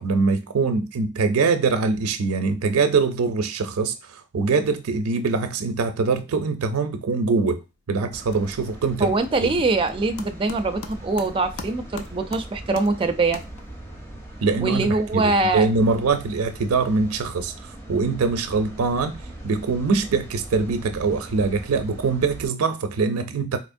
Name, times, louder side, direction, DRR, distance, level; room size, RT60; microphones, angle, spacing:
voice 1, 0.0-7.6 7.9-9.1 14.4-19.2 19.4-23.6, right 4 dB, 90° right, 0.5 m, -23 dB
sound 1, 7.4-7.8 8.1-14.0, left 4 dB, 80° left, 0.5 m, -43 dB
sound 2, 8.1-22.5, right 1 dB, 10° left, 0.7 m, -40 dB
voice 2, 9.0-13.4 14.6-15.7, right 3 dB, 25° right, 0.4 m, -23 dB
4.2 x 2.9 x 2.5 m
head